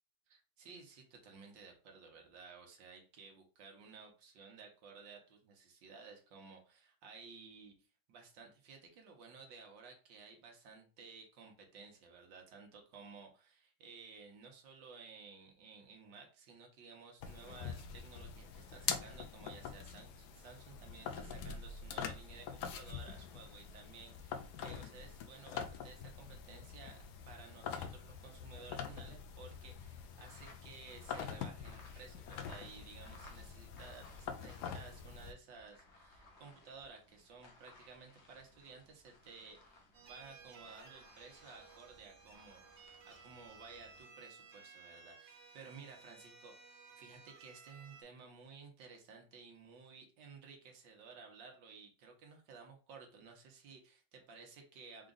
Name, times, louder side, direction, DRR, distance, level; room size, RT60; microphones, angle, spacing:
voice 1, 0.3-55.1, right 5 dB, 65° right, 2 dB, 1.6 m, -55 dB
sound 1, 17.2-35.3, left 7 dB, 80° left, 0.9 m, -45 dB
sound 2, 30.1-35.1 35.4-44.0, left 2 dB, 50° left, 0.8 m, -61 dB
sound 3, 39.9-48.0, right 5 dB, 90° right, 1.8 m, -58 dB
4.9 x 2.4 x 3.8 m, 0.36 s
omnidirectional pair, 2.4 m